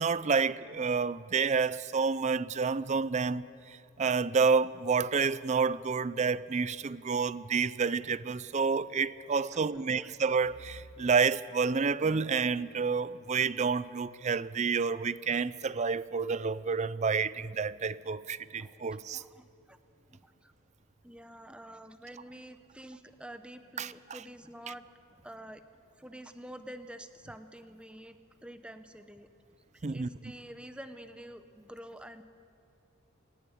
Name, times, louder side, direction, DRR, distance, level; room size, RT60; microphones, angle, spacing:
voice 1, 0.0-19.2 23.8-23.9 29.8-30.1, right 5 dB, 30° right, 0.4 m, -29 dB
voice 2, 9.5-10.1 18.5-18.7 19.1-19.8 20.1-20.5 21.0-24.9 25.2-25.6 26.0-29.3 29.7-32.2, right 1 dB, 5° right, 0.8 m, -48 dB
26.0 x 11.0 x 9.9 m
head